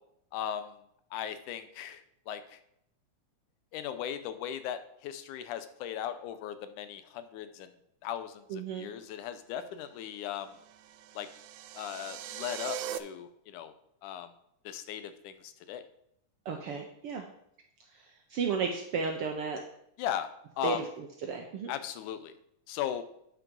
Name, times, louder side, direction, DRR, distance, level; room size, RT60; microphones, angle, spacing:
voice 1, 0.3-0.8 1.1-2.6 3.7-7.7 8.0-10.5 11.2-11.3 11.7-13.7 14.0-14.3 14.7-15.8 20.0-20.3 20.6-20.8 21.7-22.3 22.7-23.0, left 10 dB, 90° left, 11 dB, 2.2 m, -37 dB
voice 2, 8.5-8.9 16.4-17.2 18.3-19.6 20.6-20.8 21.3-21.7, right 5 dB, 70° right, 2 dB, 1.3 m, -33 dB
sound 1, 10.4-13.0, right 11 dB, 90° right, 2.1 m, -41 dB
9.4 x 6.0 x 5.2 m, 0.75 s
omnidirectional pair, 3.4 m